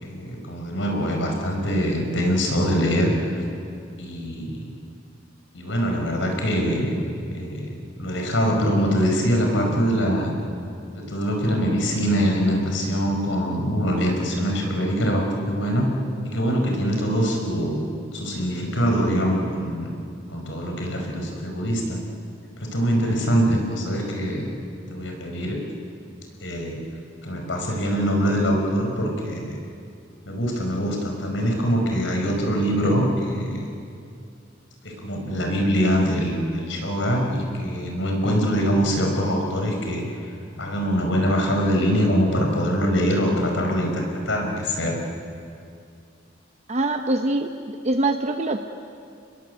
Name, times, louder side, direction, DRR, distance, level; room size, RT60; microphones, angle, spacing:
voice 1, 0.0-3.4 4.0-4.7 5.5-7.0 7.3-10.3 10.9-15.9 16.2-17.8 18.1-19.9 20.3-22.0 22.6-24.5 24.9-25.6 26.4-26.8 27.2-29.6 30.3-33.7 34.8-40.0 40.6-45.0, equal, 85° left, 2 dB, 5.3 m, -23 dB
voice 2, 46.7-48.6, right 2 dB, 35° right, 5 dB, 0.9 m, -24 dB
29.5 x 21.5 x 8.2 m, 2.5 s
head